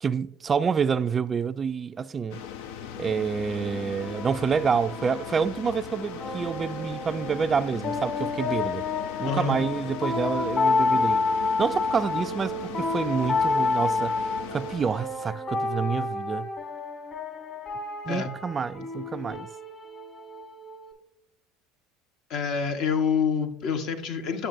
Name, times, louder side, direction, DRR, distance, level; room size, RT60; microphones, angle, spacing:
voice 1, 0.0-2.4 3.0-8.8 9.2-11.2 11.6-14.2 14.5-16.5 18.1-19.5, right 6 dB, 30° right, 0.3 m, -28 dB
sound 1, 2.3-15.3, left 9 dB, 80° left, 0.5 m, -39 dB
sound 2, 3.5-20.9, left 3 dB, 35° left, 1.8 m, -30 dB
voice 2, 22.3-24.5, left 6 dB, 60° left, 1.0 m, -27 dB
8.9 x 6.7 x 2.6 m
supercardioid pair, 95°, 0 cm